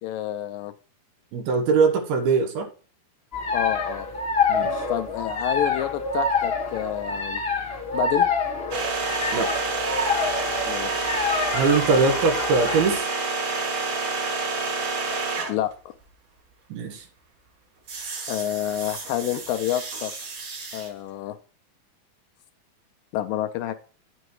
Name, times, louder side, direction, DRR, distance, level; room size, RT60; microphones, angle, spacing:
voice 1, 0.0-0.7 3.5-4.1 4.9-7.4 7.9-8.3 10.7-11.0 15.5-15.9 18.3-20.1 20.7-21.4 23.1-23.7, left 12 dB, 80° left, 8 dB, 2.1 m, -28 dB
voice 2, 1.3-2.7 4.5-4.8 9.3-9.5 11.5-13.0 16.7-17.0, right 4 dB, 90° right, 6 dB, 3.2 m, -22 dB
sound 1, 3.3-12.9, left 4 dB, 40° left, 0.8 m, -27 dB
sound 2, 8.7-15.7 17.9-20.9, right 3 dB, 55° right, 3.6 m, -29 dB
9.6 x 7.8 x 3.1 m, 0.38 s
omnidirectional pair, 4.2 m